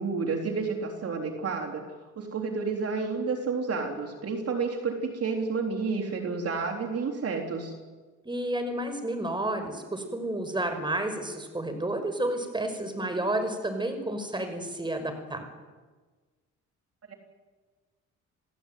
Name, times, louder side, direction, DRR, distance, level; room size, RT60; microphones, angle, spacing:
voice 1, 0.0-1.8 2.2-7.7 17.1-17.2, right 4 dB, 50° right, 2 dB, 3.9 m, -30 dB
voice 2, 8.2-15.4, right 1 dB, 15° right, 6 dB, 5.8 m, -31 dB
29.0 x 17.0 x 9.4 m, 1.3 s
cardioid pair, 90°, 30 cm